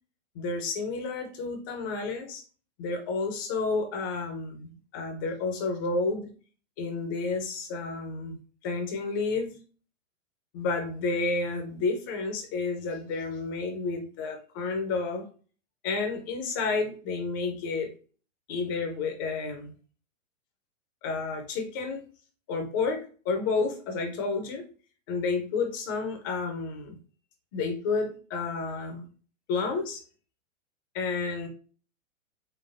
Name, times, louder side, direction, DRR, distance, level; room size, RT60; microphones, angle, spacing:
voice 1, 0.3-2.4 2.8-6.3 6.8-8.4 8.6-9.6 10.5-15.2 15.8-17.9 18.5-19.7 21.0-22.0 22.5-24.6 25.1-27.0 27.5-29.1 29.5-30.0 30.9-31.5, left 4 dB, 20° left, 5 dB, 0.3 m, -30 dB
3.8 x 3.3 x 2.5 m, 0.38 s
hypercardioid pair, 135°, 39 cm